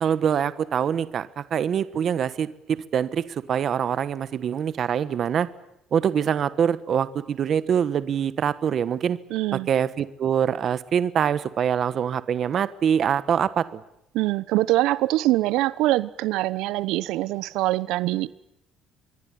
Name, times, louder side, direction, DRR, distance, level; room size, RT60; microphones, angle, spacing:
voice 1, 0.0-5.5 5.9-9.2 9.7-13.8, right 8 dB, 40° right, 15 dB, 1.3 m, -24 dB
voice 2, 9.3-9.7 14.1-18.3, right 17 dB, 85° right, 17 dB, 1.0 m, -23 dB
25.5 x 22.5 x 9.9 m, 0.80 s
cardioid pair, 170°, 0 cm